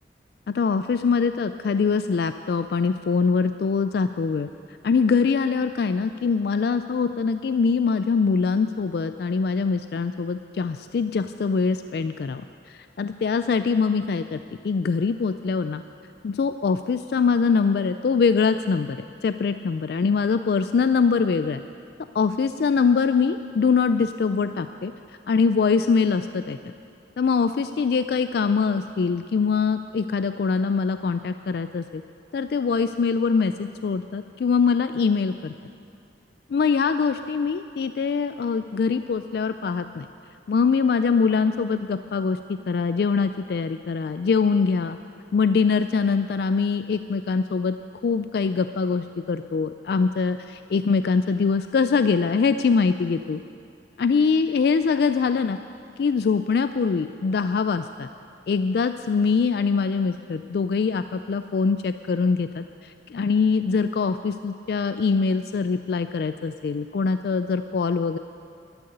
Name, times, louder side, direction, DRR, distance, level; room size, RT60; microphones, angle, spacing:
voice 1, 0.5-4.5 4.8-12.4 12.7-14.4 14.6-15.8 16.2-19.0 19.2-21.6 22.1-24.9 25.3-26.6 27.2-32.0 32.3-35.5 36.5-40.1 40.5-45.0 45.3-47.8 48.0-53.4 54.0-55.6 56.0-58.1 58.5-68.2, left 5 dB, 60° left, 10 dB, 0.3 m, -23 dB
12.5 x 10.5 x 7.9 m, 2.5 s
head